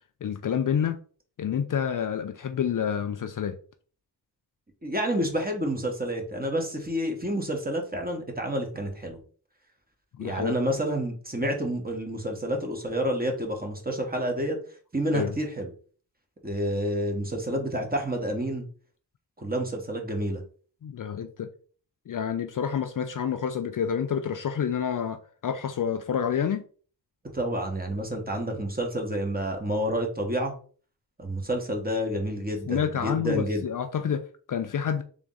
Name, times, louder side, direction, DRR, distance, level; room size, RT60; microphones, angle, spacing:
voice 1, 0.2-1.0 1.4-3.6 10.2-10.5 15.1-15.3 20.8-21.5 22.1-26.6 32.7-35.0, left 8 dB, 50° left, 0.5 m, -28 dB
voice 2, 4.8-9.2 10.2-14.6 14.9-15.7 16.4-18.7 19.4-20.4 27.3-30.5 31.2-33.7, equal, 20° right, 1.4 m, -29 dB
3.5 x 3.0 x 3.8 m
cardioid pair, 50°, 43 cm